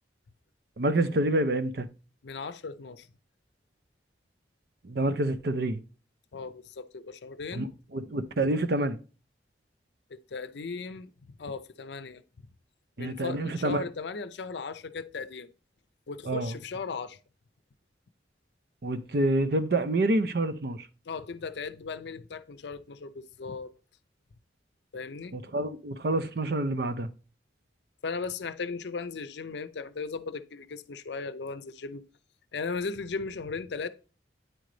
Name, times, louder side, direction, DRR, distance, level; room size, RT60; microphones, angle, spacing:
voice 1, 0.8-1.9 4.8-5.8 7.5-9.0 13.0-13.8 16.2-16.5 18.8-20.9 25.3-27.1, right 2 dB, 55° right, 0.6 m, -27 dB
voice 2, 2.2-3.1 6.3-7.7 10.1-12.2 13.0-15.5 16.1-17.2 21.1-23.7 24.9-25.3 28.0-32.0 32.5-33.9, left 4 dB, 70° left, 0.5 m, -37 dB
9.0 x 3.8 x 3.2 m
head